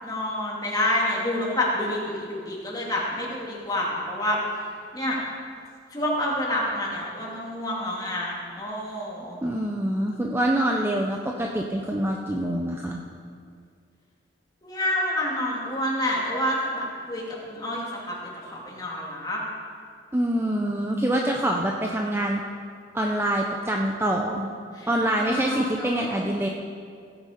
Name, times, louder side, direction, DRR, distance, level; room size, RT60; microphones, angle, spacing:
voice 1, 0.0-4.4 4.9-5.2 5.9-9.4 14.6-18.2 18.5-19.4 24.7-24.9 25.2-26.3, left 1 dB, 20° left, -4 dB, 2.4 m, -28 dB
voice 2, 9.4-13.0 20.1-22.4 22.9-24.5 24.9-26.5, right 1 dB, 10° right, 0 dB, 0.6 m, -25 dB
16.5 x 8.0 x 5.0 m, 2.2 s
head